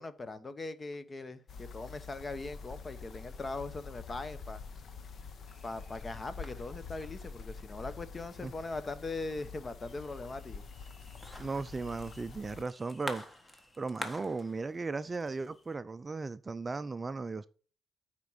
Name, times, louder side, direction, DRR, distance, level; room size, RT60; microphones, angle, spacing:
voice 1, 0.0-4.6 5.6-10.6, left 3 dB, 30° left, 0.9 m, -40 dB
sound 1, 1.5-12.6, left 5 dB, 55° left, 0.9 m, -47 dB
sound 2, 5.5-15.7, left 1 dB, 15° left, 1.4 m, -49 dB
voice 2, 11.4-13.2 13.8-17.5, right 3 dB, 25° right, 0.4 m, -36 dB
9.3 x 4.4 x 5.5 m
cardioid pair, 90°, 0 cm